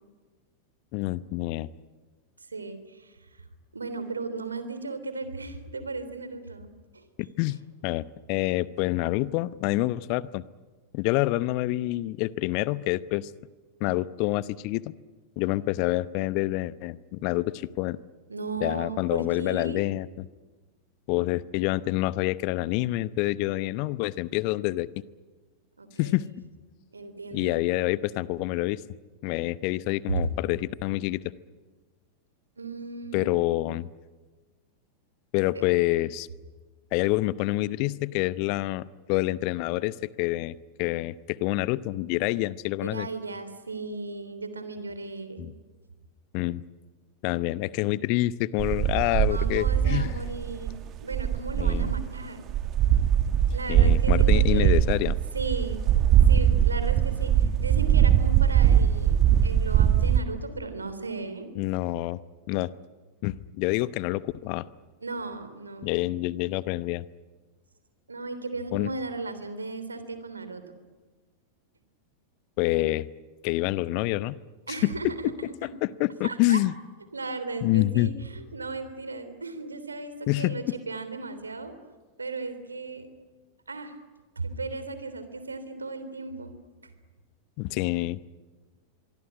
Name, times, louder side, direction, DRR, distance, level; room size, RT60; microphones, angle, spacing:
voice 1, 0.9-1.7 7.2-7.6 7.8-8.0 8.3-10.4 10.9-13.3 13.8-14.9 15.4-18.0 18.6-20.3 21.1-24.9 26.0-26.3 27.3-28.8 29.2-31.2 33.1-33.9 35.3-36.3 36.9-43.1 45.4-45.5 46.3-46.6 47.2-50.1 51.6-51.9 53.7-55.2 61.5-62.2 62.5-62.7 63.2-64.6 65.8-67.0 68.7-68.9 72.6-73.1 73.4-74.4 74.8-75.3 75.6-76.7 77.6-78.1 80.3-80.7 87.6-88.2, left 18 dB, 45° left, 18 dB, 0.8 m, -27 dB
voice 2, 2.5-3.4 3.7-6.7 6.9-7.0 18.3-19.8 25.8-26.2 26.9-27.6 30.1-30.3 32.6-33.3 35.5-35.6 42.8-45.5 49.3-52.4 53.5-54.8 55.3-55.8 56.3-61.5 65.0-65.9 68.1-70.6 74.7-75.7 76.2-76.6 77.1-81.7 82.2-83.1 83.7-83.9 84.3-86.5 86.8-86.9, right 3 dB, 75° right, 11 dB, 3.3 m, -36 dB
sound 1, 48.6-52.1 52.5-60.2, right 10 dB, 35° right, 1.6 m, -21 dB
24.5 x 24.0 x 9.9 m, 1.3 s
figure-of-eight pair, 90°, 0 cm